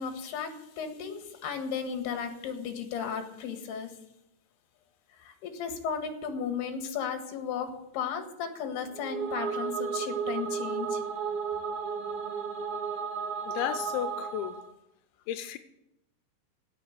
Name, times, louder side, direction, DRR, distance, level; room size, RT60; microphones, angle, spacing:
voice 1, 0.0-3.9 5.2-11.0, left 6 dB, 70° left, 3.6 m, -35 dB
sound 1, 8.9-14.7, right 6 dB, 75° right, 1.7 m, -33 dB
voice 2, 13.5-14.6 15.3-15.6, left 11 dB, 90° left, 3.0 m, -33 dB
16.5 x 6.7 x 8.0 m
omnidirectional pair, 5.1 m